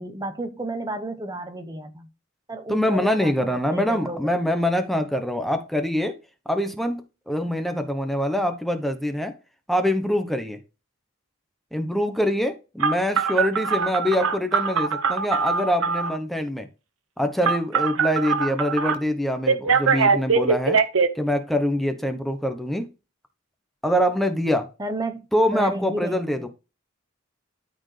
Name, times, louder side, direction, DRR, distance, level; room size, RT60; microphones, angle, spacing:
voice 1, 0.0-2.1 2.5-4.4 24.8-25.3 25.5-26.5, right 1 dB, 20° right, 0.9 m, -32 dB
voice 2, 2.7-6.2 6.5-9.3 9.7-10.6 11.7-16.7 17.2-20.8 21.1-22.9 23.8-24.7 25.3-26.5, equal, ahead, 1.0 m, -24 dB
Telephone, 12.8-16.2 17.4-19.0 19.5-21.1, right 5 dB, 85° right, 1.0 m, -22 dB
13.0 x 4.5 x 3.3 m
head